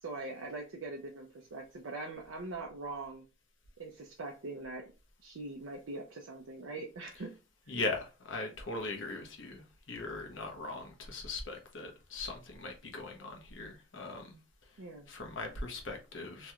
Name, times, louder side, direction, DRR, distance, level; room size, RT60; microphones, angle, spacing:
voice 1, 0.0-3.3 3.8-4.9 5.2-7.3 14.8-15.1, right 2 dB, 80° right, 0.5 m, -42 dB
voice 2, 7.7-14.4 14.7-16.5, left 3 dB, 70° left, 0.9 m, -40 dB
3.0 x 2.4 x 2.8 m
head